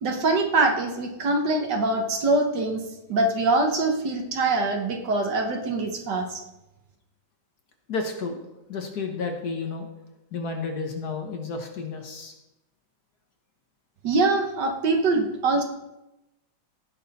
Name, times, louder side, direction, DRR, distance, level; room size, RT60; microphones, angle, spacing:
voice 1, 0.0-2.8 3.1-6.4 14.0-15.6, right 2 dB, 60° right, 4 dB, 1.7 m, -23 dB
voice 2, 7.9-9.9 10.3-12.3, left 4 dB, 55° left, 3 dB, 1.5 m, -31 dB
16.0 x 6.3 x 4.1 m, 0.95 s
omnidirectional pair, 2.3 m